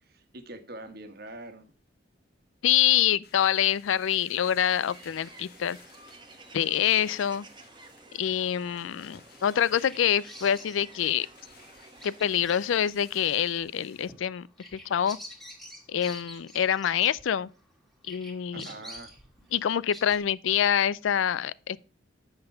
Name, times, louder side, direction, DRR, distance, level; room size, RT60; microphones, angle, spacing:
voice 1, 0.0-1.7 18.5-19.1, right 2 dB, 50° right, 1.3 m, -43 dB
voice 2, 2.6-5.8 6.5-7.5 8.1-11.3 12.0-14.5 14.7-15.2 15.9-17.5 18.1-18.7 19.5-21.8, left 9 dB, 75° left, 0.4 m, -26 dB
sound 1, 3.2-14.1, left 6 dB, 55° left, 1.3 m, -56 dB
sound 2, 4.8-12.9, right 3 dB, 25° right, 1.0 m, -52 dB
Bird vocalization bird call bird song, 9.3-17.7 18.0-20.2, equal, ahead, 1.8 m, -48 dB
8.0 x 5.5 x 5.5 m
head